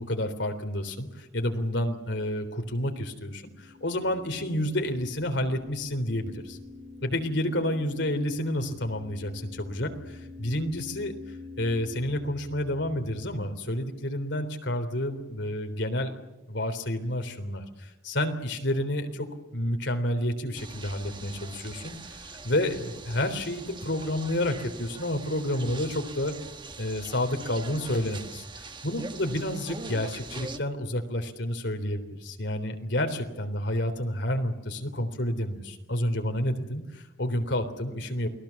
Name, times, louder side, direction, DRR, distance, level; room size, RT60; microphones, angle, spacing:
voice 1, 0.0-6.6 7.0-16.1 16.5-26.4 26.8-38.3, left 1 dB, 65° left, 6 dB, 3.6 m, -30 dB
sound 1, 3.2-13.4, left 3 dB, 45° right, 6.6 m, -46 dB
sound 2, 20.6-30.6, right 3 dB, 25° right, 1.3 m, -43 dB
29.0 x 20.5 x 7.2 m, 1.0 s
head